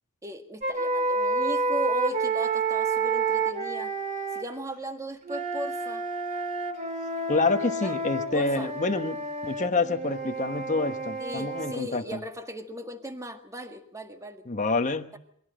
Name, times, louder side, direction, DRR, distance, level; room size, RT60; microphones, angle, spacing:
voice 1, 0.2-3.9 4.3-6.0 7.8-8.0 8.3-8.7 11.2-14.5, right 1 dB, 15° right, 6 dB, 1.8 m, -37 dB
sound 1, 0.6-4.5 5.2-11.8, right 3 dB, 35° right, 2.3 m, -29 dB
voice 2, 7.3-12.2 14.5-15.1, left 3 dB, 35° left, 6 dB, 1.1 m, -27 dB
23.0 x 16.5 x 7.8 m, 0.68 s
head